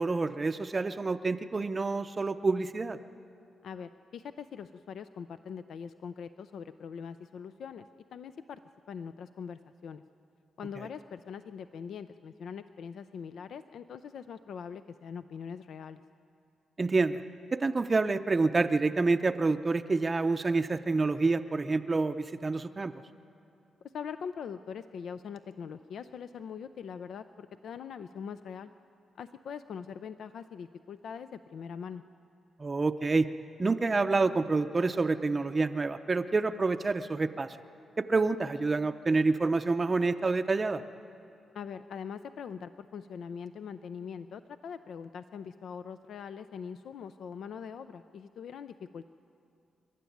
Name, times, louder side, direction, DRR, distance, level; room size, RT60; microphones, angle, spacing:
voice 1, 0.0-3.0 16.8-17.2 17.5-22.9 32.6-33.3 33.6-37.6 38.1-40.8, right 3 dB, 30° right, 8 dB, 0.6 m, -28 dB
voice 2, 3.6-8.6 8.9-10.0 10.6-16.0 23.9-28.7 29.2-32.0 41.5-49.0, left 7 dB, 70° left, 11 dB, 0.5 m, -42 dB
28.0 x 12.5 x 9.2 m, 2.7 s
cardioid pair, 110°, 0 cm